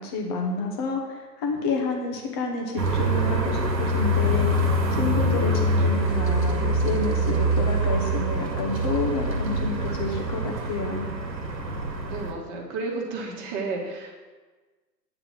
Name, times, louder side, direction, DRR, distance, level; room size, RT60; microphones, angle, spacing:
voice 1, 0.0-11.1, left 3 dB, 15° left, 1 dB, 0.6 m, -29 dB
sound 1, 2.8-12.3, right 1 dB, 85° right, 1.6 m, -24 dB
voice 2, 12.0-14.1, right 3 dB, 25° right, 0 dB, 1.4 m, -32 dB
8.7 x 4.0 x 7.0 m, 1.3 s
hypercardioid pair, 135°, 49 cm